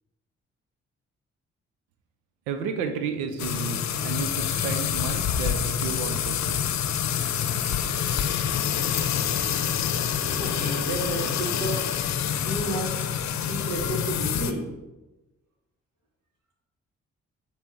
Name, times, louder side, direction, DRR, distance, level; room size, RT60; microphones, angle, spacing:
voice 1, 2.5-6.6, right 6 dB, 85° right, 6 dB, 0.6 m, -32 dB
sound 1, 3.4-14.5, left 9 dB, 60° left, 0.7 m, -27 dB
voice 2, 10.4-11.8 12.4-13.0 13.4-14.6, right 2 dB, 70° right, -2 dB, 2.1 m, -31 dB
7.3 x 3.1 x 5.4 m, 1.1 s
hypercardioid pair, 40°, 31 cm